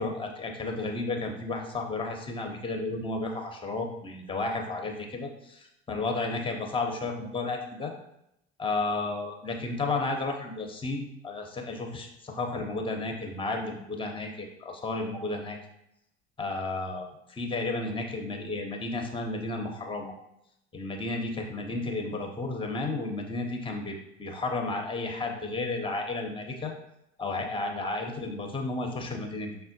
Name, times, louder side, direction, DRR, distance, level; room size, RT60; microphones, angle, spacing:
voice 1, 0.0-7.9 8.6-15.6 16.4-20.1 20.7-26.7 27.2-29.7, left 3 dB, 15° left, 3 dB, 0.7 m, -32 dB
5.5 x 2.1 x 2.7 m, 0.82 s
figure-of-eight pair, 65°, 35 cm